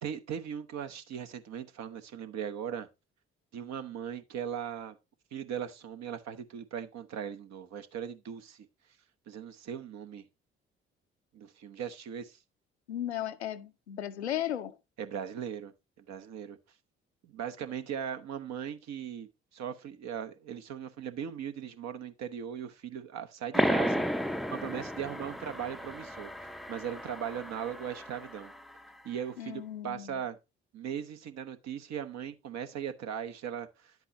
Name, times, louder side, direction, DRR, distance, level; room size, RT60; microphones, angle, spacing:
voice 1, 0.0-2.9 3.5-5.0 5.3-8.7 9.3-10.2 11.3-12.4 15.0-16.6 17.2-24.0 24.5-26.3 26.7-28.5 29.0-30.4 30.7-33.9, right 8 dB, 55° right, 1.0 m, -39 dB
voice 2, 12.9-14.8 29.4-30.2, left 11 dB, 85° left, 0.6 m, -35 dB
sound 1, 23.5-28.8, equal, ahead, 0.5 m, -33 dB
10.5 x 8.1 x 2.9 m
figure-of-eight pair, 45°, 32 cm